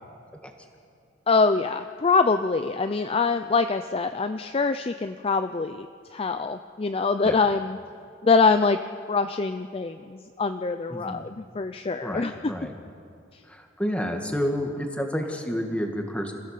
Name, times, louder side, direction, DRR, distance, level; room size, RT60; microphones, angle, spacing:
voice 1, 1.3-5.9 6.1-7.8 8.2-8.8 9.1-12.5, left 4 dB, 30° left, 9 dB, 0.5 m, -24 dB
voice 2, 10.9-11.3 12.0-12.8 13.5-16.3, equal, 5° left, 3 dB, 1.9 m, -30 dB
27.5 x 15.5 x 6.7 m, 2.3 s
head